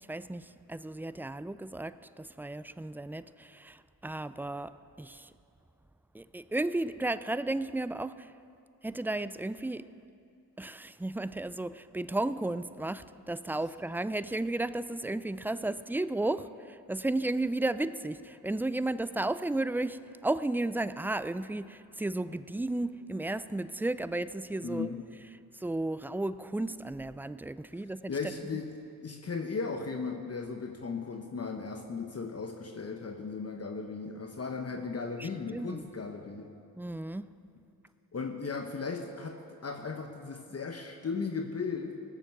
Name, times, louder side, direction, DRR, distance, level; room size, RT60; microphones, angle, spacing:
voice 1, 0.1-5.3 6.1-8.3 8.8-9.9 10.6-24.9 25.6-28.1 35.2-35.8 36.8-37.3, right 2 dB, 5° right, 15 dB, 0.4 m, -34 dB
voice 2, 24.6-25.0 28.1-28.7 29.0-36.5 38.1-42.0, left 4 dB, 40° left, 4 dB, 1.0 m, -36 dB
17.5 x 7.5 x 6.7 m, 2.5 s
cardioid pair, 50°, 37 cm